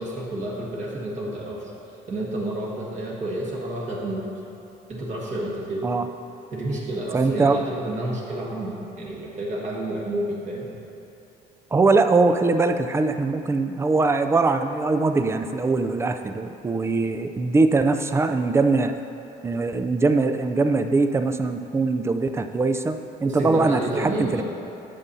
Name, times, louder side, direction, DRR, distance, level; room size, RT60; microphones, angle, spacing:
voice 1, 0.0-1.7 2.1-4.2 4.9-5.9 6.5-10.7 23.2-24.4, right 1 dB, 45° right, -5 dB, 1.6 m, -30 dB
voice 2, 7.1-7.6 11.7-18.9 19.4-24.4, right 3 dB, 15° right, 8 dB, 0.4 m, -22 dB
11.0 x 6.8 x 2.7 m, 2.8 s
cardioid pair, 110°, 17 cm